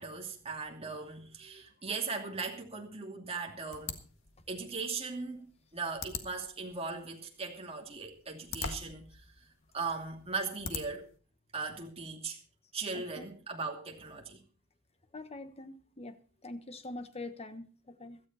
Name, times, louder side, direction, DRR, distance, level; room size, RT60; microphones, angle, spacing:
voice 1, 0.0-4.0 4.5-5.5 5.7-9.2 9.7-11.1 11.5-12.4 12.7-14.4, right 4 dB, 30° right, 2.7 m, -38 dB
sound 1, 3.7-11.2, left 5 dB, 65° left, 1.7 m, -45 dB
voice 2, 12.9-13.3 15.1-16.2 16.4-18.2, left 2 dB, 30° left, 1.3 m, -44 dB
16.5 x 13.5 x 4.2 m
head